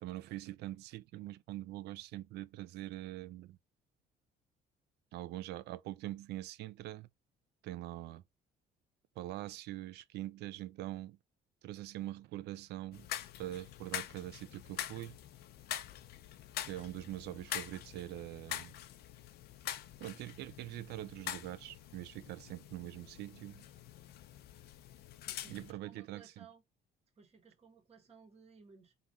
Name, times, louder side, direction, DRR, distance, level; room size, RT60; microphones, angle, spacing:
voice 1, 0.0-3.6 5.1-7.1 7.6-8.2 9.2-11.2 11.6-13.1 13.4-15.2 16.7-18.7 20.0-23.7 25.5-26.5, right 15 dB, 80° right, 0.5 m, -43 dB
sound 1, 12.9-25.7, left 11 dB, 70° left, 0.6 m, -45 dB
voice 2, 25.2-26.6 27.2-28.9, right 5 dB, 40° right, 1.7 m, -59 dB
3.9 x 3.0 x 3.8 m
cardioid pair, 110°, 17 cm